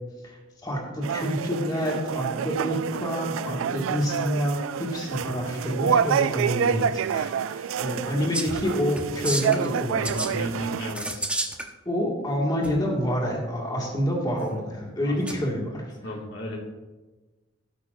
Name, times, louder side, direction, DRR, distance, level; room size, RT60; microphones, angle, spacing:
voice 1, 0.2-10.3 11.9-15.8, equal, 20° left, -2 dB, 2.0 m, -28 dB
sound 1, 1.0-10.9, right 7 dB, 70° right, 0.3 m, -28 dB
sound 2, 8.3-8.6 9.0-9.7 10.0-10.3 10.9-11.7 12.6-12.7 15.3-15.4, right 1 dB, 5° right, 0.8 m, -30 dB
voice 2, 10.3-11.3 15.0-15.2 16.0-16.6, equal, 65° left, -1 dB, 2.1 m, -34 dB
17.0 x 8.4 x 2.6 m, 1.2 s
head